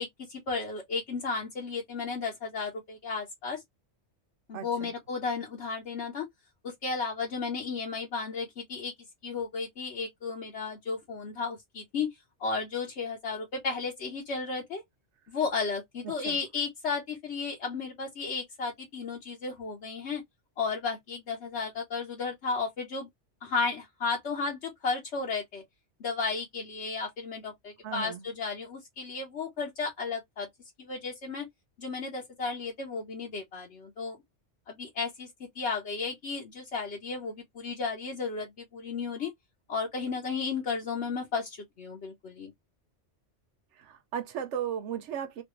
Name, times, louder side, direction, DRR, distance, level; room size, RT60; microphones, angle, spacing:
voice 1, 0.0-3.6 4.5-6.3 6.6-8.9 9.2-12.1 12.4-14.8 15.3-20.2 20.6-23.1 23.4-25.6 26.0-30.5 30.8-31.5 31.8-34.2 34.7-35.3 35.5-39.3 39.7-42.5, left 4 dB, 70° left, 1.2 m, -34 dB
voice 2, 4.5-4.9 16.0-16.4 27.8-28.3 43.8-45.4, right 8 dB, 80° right, 0.9 m, -36 dB
3.1 x 2.6 x 3.0 m
omnidirectional pair, 1.2 m